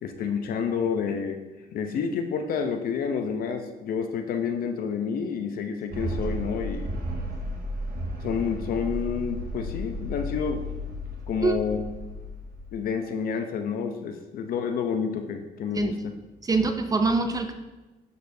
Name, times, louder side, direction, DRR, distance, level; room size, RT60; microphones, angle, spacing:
voice 1, 0.0-1.4 1.7-7.0 8.2-10.6 11.3-11.8 12.7-16.0, left 6 dB, 60° left, 6 dB, 0.8 m, -29 dB
sound 1, 5.9-12.8, equal, 55° right, 1.2 m, -33 dB
voice 2, 16.4-17.5, right 3 dB, 20° right, 7 dB, 0.6 m, -24 dB
11.5 x 4.3 x 2.8 m, 1.1 s
cardioid pair, 110°, 17 cm